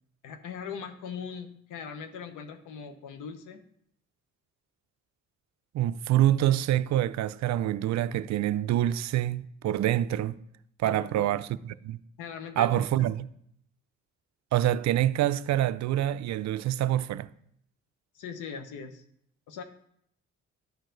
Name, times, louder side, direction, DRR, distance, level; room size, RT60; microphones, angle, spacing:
voice 1, 0.2-3.6 10.8-11.4 12.2-13.1 18.1-19.0 19.5-19.6, left 6 dB, 85° left, 0.9 m, -40 dB
voice 2, 5.7-10.4 10.8-12.0 12.6-13.3 14.5-17.3, right 12 dB, 65° right, 0.4 m, -26 dB
12.5 x 4.7 x 3.9 m
cardioid pair, 90°, 30 cm